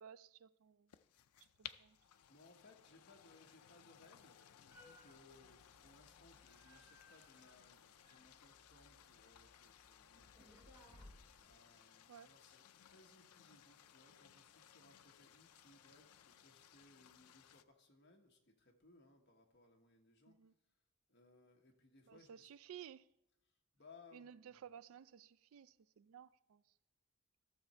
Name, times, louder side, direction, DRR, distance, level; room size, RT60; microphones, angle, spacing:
voice 1, 0.0-0.9 1.4-2.0 12.1-12.3 20.3-20.5 22.1-23.1 24.1-26.6, right 8 dB, 75° right, 0.3 m, -56 dB
sound 1, 0.9-17.6, left 11 dB, 90° left, 0.5 m, -61 dB
voice 2, 2.3-20.4 21.1-22.5 23.5-24.6, left 3 dB, 50° left, 1.4 m, -66 dB
sound 2, 4.7-11.5, left 1 dB, 10° right, 3.5 m, -65 dB
13.0 x 6.8 x 4.4 m
head